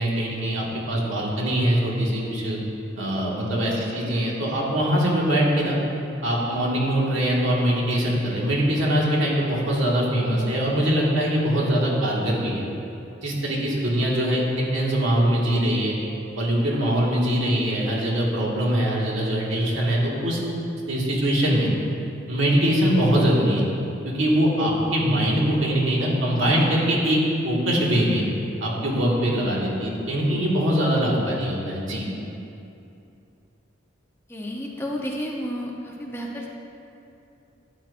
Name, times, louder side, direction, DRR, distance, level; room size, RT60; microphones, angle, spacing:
voice 1, 0.0-2.6 3.0-5.8 6.2-12.6 13.2-15.9 16.4-20.4 20.9-21.7 22.3-23.6 24.0-27.2 27.4-28.2 28.6-32.1, equal, 80° right, -4 dB, 1.9 m, -22 dB
voice 2, 3.7-4.1 34.3-36.5, equal, 10° left, -1 dB, 0.8 m, -32 dB
13.0 x 8.9 x 2.6 m, 2.7 s
head